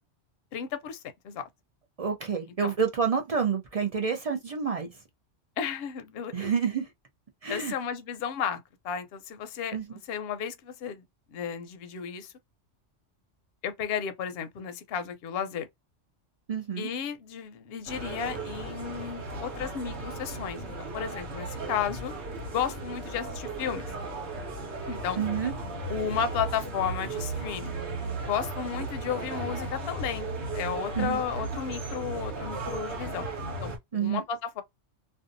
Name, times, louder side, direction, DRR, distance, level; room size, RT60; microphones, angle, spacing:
voice 1, 0.5-1.5 2.6-2.7 5.6-6.3 7.5-11.0 11.3-12.3 13.6-15.7 16.8-22.1 22.5-23.8 24.9-25.2 25.9-27.7 28.2-30.3 30.5-33.3 33.6-34.6, left 7 dB, 60° left, 0.7 m, -33 dB
voice 2, 2.0-4.9 6.3-6.9 7.4-7.7 9.7-9.8 16.5-16.9 25.2-25.5 31.0-31.2 33.9-34.2, right 6 dB, 50° right, 0.4 m, -28 dB
sound 1, 17.9-33.8, right 2 dB, 65° right, 1.1 m, -36 dB
2.6 x 2.2 x 2.5 m
omnidirectional pair, 1.2 m